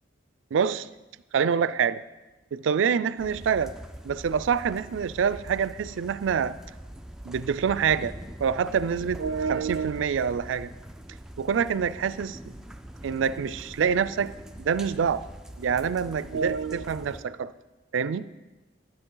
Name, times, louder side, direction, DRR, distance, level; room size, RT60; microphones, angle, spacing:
voice 1, 0.5-0.9 1.3-2.0 2.5-3.7 4.0-6.6 7.2-10.7 11.4-12.4 13.0-14.3 14.6-15.3 15.6-17.5 17.9-18.3, right 6 dB, 85° right, 16 dB, 0.4 m, -26 dB
sound 1, 3.2-17.2, right 1 dB, 5° right, 0.4 m, -43 dB
12.5 x 10.0 x 3.8 m, 1.1 s
head